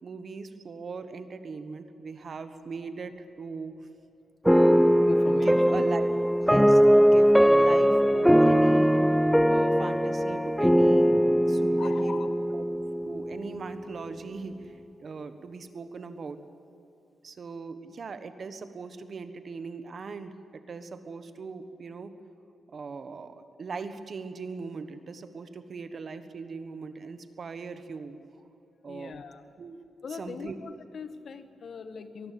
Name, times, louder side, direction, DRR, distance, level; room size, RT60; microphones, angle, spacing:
voice 1, 0.0-3.8 4.4-4.8 5.3-6.1 6.4-9.0 9.5-11.2 11.5-12.7 13.0-16.4 17.2-22.1 22.7-28.2 28.8-29.1 29.6-29.8 30.1-30.6, right 4 dB, 40° right, 10 dB, 1.3 m, -40 dB
sound 1, 4.5-13.6, equal, ahead, 0.6 m, -21 dB
voice 2, 5.0-5.8 11.7-12.4 28.9-29.4 30.0-32.3, left 5 dB, 50° left, 10 dB, 1.4 m, -41 dB
24.0 x 20.5 x 8.6 m, 2.9 s
wide cardioid pair, 160°, 0 cm